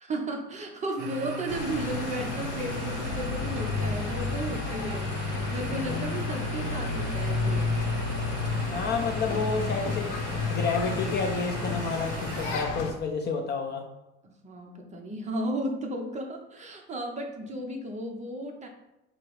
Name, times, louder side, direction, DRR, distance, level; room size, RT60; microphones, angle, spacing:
voice 1, 0.0-7.7 14.4-18.7, right 1 dB, 20° right, 2 dB, 0.6 m, -34 dB
sound 1, 1.0-12.6, right 2 dB, 60° right, 0.7 m, -39 dB
sound 2, 1.5-12.9, left 4 dB, 70° left, 0.8 m, -31 dB
voice 2, 8.7-10.2 10.5-13.8, left 4 dB, 35° left, 3 dB, 0.4 m, -30 dB
4.6 x 2.0 x 4.6 m, 0.95 s
cardioid pair, 140°, 33 cm